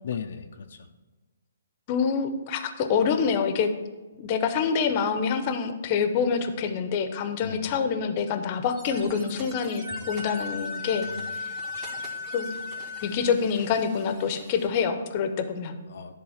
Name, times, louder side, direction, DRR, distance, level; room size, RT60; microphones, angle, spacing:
voice 1, 0.0-0.9 7.4-7.8 11.0-11.4 11.7-12.1 15.9-16.2, left 7 dB, 65° left, 5 dB, 0.5 m, -37 dB
voice 2, 1.9-3.7 4.2-11.0 11.4-11.5 12.3-12.5 13.0-15.7, left 6 dB, 35° left, 8 dB, 0.7 m, -26 dB
sound 1, 8.7-14.7, right 3 dB, 25° right, 1.3 m, -47 dB
Wind instrument woodwind instrument, 9.8-13.3, left 4 dB, 50° right, 1.3 m, -36 dB
10.5 x 3.9 x 5.7 m, 1.2 s
hypercardioid pair, 155°, 0 cm